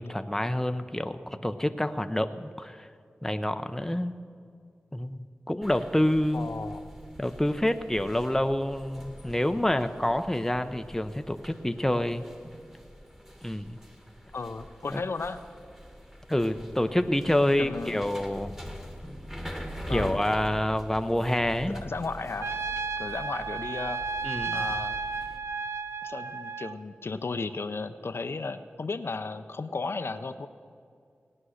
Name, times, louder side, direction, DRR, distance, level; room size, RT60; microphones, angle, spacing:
voice 1, 0.0-2.9 3.2-4.1 4.9-5.2 5.5-6.5 7.2-12.3 13.4-13.8 14.9-15.0 16.3-18.5 19.9-21.8 24.2-24.7, left 1 dB, 10° left, 8 dB, 0.6 m, -27 dB
sound 1, 5.6-25.4, equal, 10° right, 1.6 m, -44 dB
voice 2, 6.3-6.9 14.3-15.4 17.6-18.0 19.9-20.2 21.6-22.5 23.0-24.0 24.5-25.0 26.0-30.5, left 3 dB, 70° left, 10 dB, 0.6 m, -34 dB
Trumpet, 22.4-26.8, right 4 dB, 90° right, 0.5 m, -33 dB
17.0 x 9.7 x 6.4 m, 2.3 s
wide cardioid pair, 75°, 4 cm